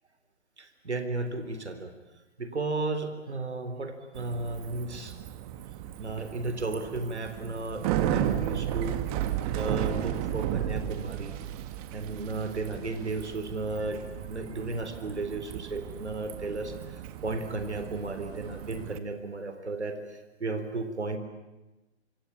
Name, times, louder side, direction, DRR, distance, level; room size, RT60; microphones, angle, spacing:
voice 1, 0.6-1.9 2.4-5.1 6.0-9.0 9.5-11.4 11.9-21.2, right 3 dB, 80° right, 8 dB, 3.8 m, -34 dB
Bicycle, 4.2-19.0, right 11 dB, 35° right, 2.0 m, -34 dB
26.0 x 25.5 x 8.6 m, 1.1 s
figure-of-eight pair, 125°, 33 cm